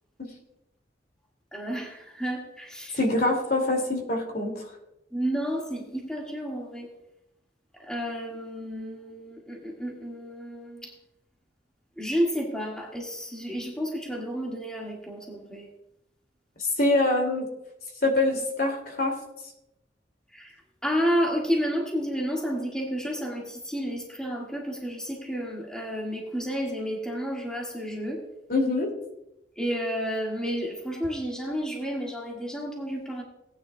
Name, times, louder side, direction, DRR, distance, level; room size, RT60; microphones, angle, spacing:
voice 1, 1.5-1.9 2.2-2.9 5.1-6.9 7.9-10.8 12.0-15.6 20.8-28.2 29.6-33.2, equal, 5° left, -2 dB, 2.0 m, -31 dB
voice 2, 2.9-4.7 16.8-17.5 18.0-19.1 28.5-28.9, left 2 dB, 60° left, 2 dB, 2.6 m, -24 dB
18.5 x 10.0 x 2.3 m, 0.88 s
head